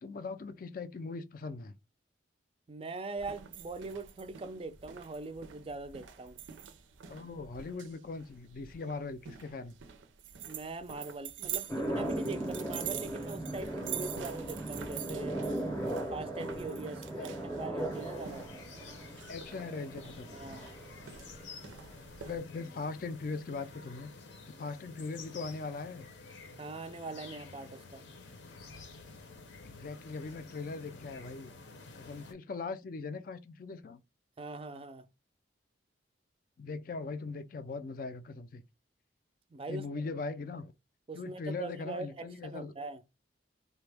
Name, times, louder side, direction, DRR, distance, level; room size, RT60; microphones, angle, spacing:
voice 1, 0.0-1.8 7.1-9.8 17.2-17.3 19.3-20.7 22.2-24.1 24.5-26.1 29.6-31.5 32.0-34.0 36.6-38.6 39.7-40.7 41.1-42.7, left 4 dB, 45° left, 0.4 m, -40 dB
voice 2, 2.7-6.4 10.5-15.4 16.1-18.5 20.3-20.7 26.6-28.0 34.4-35.0 39.5-39.8 41.1-43.0, right 3 dB, 30° right, 0.4 m, -42 dB
sound 1, 3.2-22.4, right 9 dB, 90° right, 0.5 m, -46 dB
sound 2, 11.7-22.1, right 1 dB, 10° left, 0.6 m, -38 dB
sound 3, 17.9-32.3, left 4 dB, 75° left, 0.7 m, -51 dB
3.3 x 2.1 x 3.3 m
head